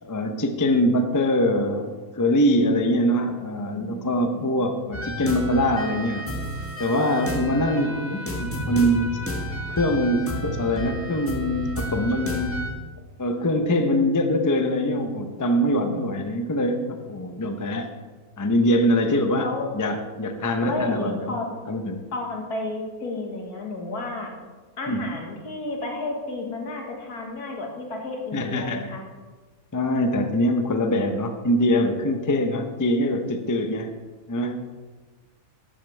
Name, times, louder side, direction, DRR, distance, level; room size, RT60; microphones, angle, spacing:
voice 1, 0.0-6.2 6.8-9.2 9.7-12.6 13.2-17.9 18.4-22.0 24.9-25.1 28.3-28.9 29.7-33.9 34.3-34.6, left 1 dB, 25° left, 6 dB, 0.4 m, -23 dB
voice 2, 3.7-4.0 4.3-4.5 15.7-16.1 19.4-19.7 20.6-21.5 22.1-24.3 24.8-29.0, left 2 dB, 75° left, 1 dB, 2.0 m, -32 dB
sound 1, 4.9-12.7, equal, 10° left, 1.1 m, -31 dB
12.5 x 8.8 x 3.3 m, 1.3 s
omnidirectional pair, 1.6 m